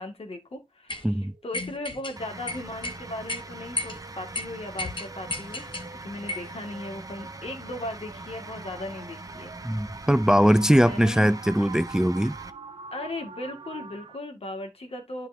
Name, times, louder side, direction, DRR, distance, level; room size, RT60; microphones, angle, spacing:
voice 1, 0.0-5.7 6.0-9.5 10.8-11.3 12.9-15.3, left 1 dB, 70° left, 2.0 m, -37 dB
sound 1, 0.9-1.0 1.5-2.1 2.5-3.0 3.3-3.4 3.8-4.0 4.3-4.4 4.8-5.9 6.3-6.5, left 2 dB, 55° left, 1.3 m, -32 dB
sound 2, 0.9-14.2, right 5 dB, 75° right, 0.7 m, -47 dB
sound 3, 2.2-12.5, right 2 dB, 35° right, 0.9 m, -42 dB
voice 2, 9.6-12.4, equal, 5° right, 0.3 m, -21 dB
10.5 x 4.6 x 2.7 m
cardioid pair, 50°, 10 cm